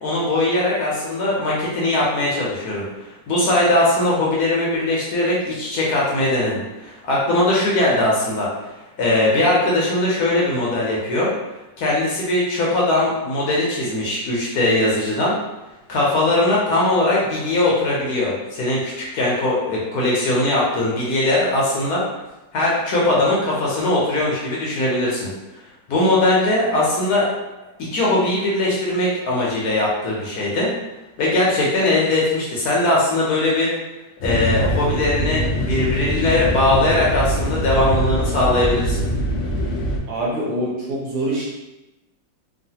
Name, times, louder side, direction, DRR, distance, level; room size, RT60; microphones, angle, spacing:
voice 1, 0.0-8.5 9.0-11.3 11.8-15.3 15.9-22.0 22.5-25.3 25.9-27.3 27.8-30.7 31.2-33.7 34.2-39.0, left 2 dB, 65° left, -5 dB, 1.0 m, -20 dB
sound 1, 34.2-40.0, equal, 90° left, 0.6 m, -23 dB
voice 2, 40.1-41.5, right 1 dB, 65° right, -5 dB, 1.3 m, -25 dB
3.1 x 2.4 x 2.7 m, 1.0 s
omnidirectional pair, 2.0 m